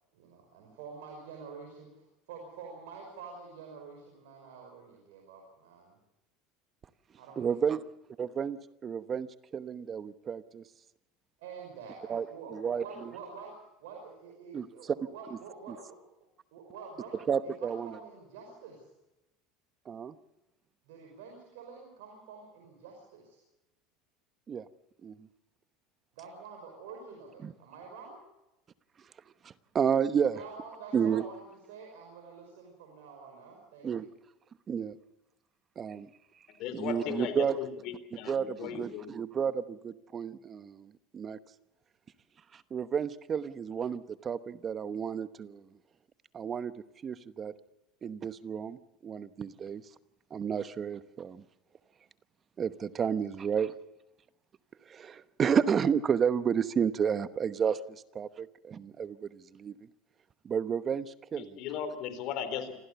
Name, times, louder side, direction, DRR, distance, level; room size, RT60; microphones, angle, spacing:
voice 1, 0.1-6.0 7.2-7.7 11.4-16.0 16.5-18.8 20.9-23.4 26.2-28.2 30.2-34.0, right 5 dB, 80° right, 1 dB, 5.7 m, -47 dB
voice 2, 7.4-7.8 8.2-10.6 12.1-13.1 14.5-15.0 15.7-15.8 17.3-18.0 19.9-20.1 24.5-24.7 25.0-25.3 27.4-27.5 29.4-30.4 30.9-31.2 33.8-34.1 34.7-34.9 35.8-36.1 36.7-37.6 38.3-41.4 42.5-45.6 46.3-46.7 47.0-47.5 48.0-49.8 50.3-51.4 52.6-53.7 54.9-59.7 60.4-61.6, right 7 dB, 35° right, 13 dB, 1.0 m, -31 dB
voice 3, 36.6-39.1 61.4-62.7, left 8 dB, 65° left, 10 dB, 3.8 m, -37 dB
26.5 x 15.5 x 7.0 m, 0.93 s
supercardioid pair, 100°, 0 cm